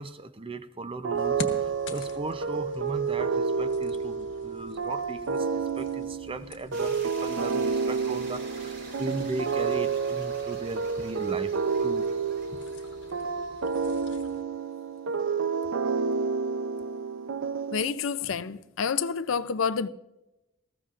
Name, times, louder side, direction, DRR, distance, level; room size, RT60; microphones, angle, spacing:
voice 1, 0.0-11.5 11.8-12.1 12.5-12.6, right 2 dB, 25° right, 0.6 m, -37 dB
sound 1, 1.0-18.2, right 5 dB, 85° right, 0.6 m, -30 dB
sound 2, 1.1-14.4, left 3 dB, 65° left, 1.2 m, -47 dB
sound 3, 6.7-14.7, right 2 dB, 65° right, 3.7 m, -48 dB
voice 2, 17.7-19.9, left 6 dB, 80° left, 0.5 m, -28 dB
19.0 x 15.0 x 2.5 m
head